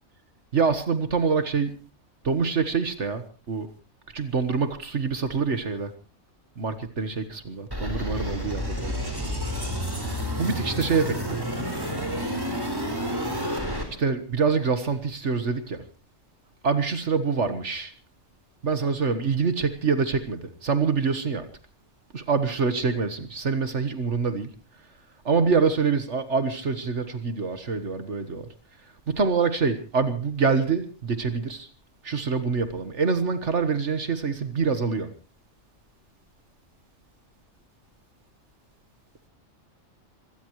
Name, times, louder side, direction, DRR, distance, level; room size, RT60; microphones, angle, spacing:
voice 1, 0.5-1.7 2.2-3.7 4.1-5.9 6.6-9.0 10.4-11.4 14.0-15.8 16.6-17.9 18.6-21.5 22.1-24.5 25.3-28.5 29.1-31.7 32.0-35.1, right 5 dB, 65° right, 10 dB, 1.7 m, -25 dB
sound 1, 7.7-13.8, equal, 15° right, 4.2 m, -30 dB
25.5 x 17.5 x 3.1 m, 0.34 s
omnidirectional pair, 1.3 m